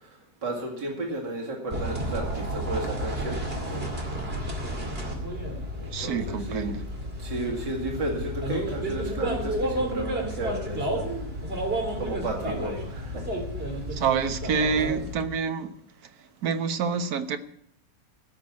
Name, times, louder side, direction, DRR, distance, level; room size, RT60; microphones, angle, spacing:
voice 1, 0.4-3.8 5.8-6.7 7.2-11.1 11.9-13.3, right 2 dB, 85° right, 2.9 m, -33 dB
sound 1, 1.7-15.2, right 1 dB, 35° right, 2.6 m, -31 dB
voice 2, 5.9-6.8 13.9-15.7 16.4-17.4, right 6 dB, 65° right, 1.4 m, -27 dB
17.0 x 6.0 x 8.4 m
omnidirectional pair, 1.8 m